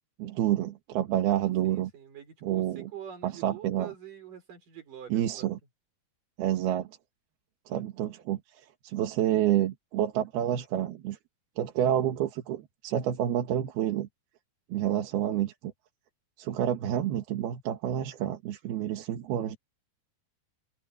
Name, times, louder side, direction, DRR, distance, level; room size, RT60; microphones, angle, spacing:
voice 1, 0.2-1.9 2.4-2.9 3.2-3.9 5.1-5.6 6.4-6.9 7.7-8.4 8.8-11.2 11.6-14.1 14.7-15.7 16.4-19.6, right 11 dB, 90° right, 3.5 m, -28 dB
voice 2, 1.6-5.5, right 9 dB, 60° right, 6.8 m, -45 dB
omnidirectional pair, 4.3 m